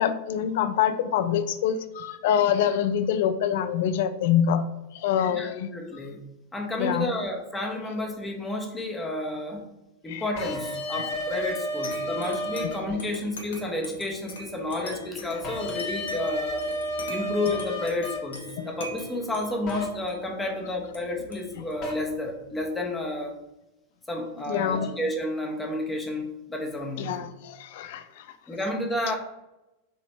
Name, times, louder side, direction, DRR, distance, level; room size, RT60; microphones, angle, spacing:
voice 1, 0.0-4.6 4.9-5.7 6.8-7.1 10.1-10.2 12.6-12.8 18.6-18.7 24.5-24.9 27.0-28.3, left 9 dB, 55° left, 11 dB, 0.3 m, -25 dB
voice 2, 5.7-9.6 10.0-16.6 17.1-23.4 24.1-27.1 28.5-29.2, left 1 dB, 10° left, 1 dB, 0.8 m, -31 dB
sound 1, 10.4-12.7 15.4-18.2 19.7-19.8 21.8-21.9, equal, 35° left, 1.0 m, -31 dB
sound 2, 11.8-22.9, left 2 dB, 70° left, 0.7 m, -42 dB
3.0 x 3.0 x 4.2 m, 0.94 s
figure-of-eight pair, 90°, 0 cm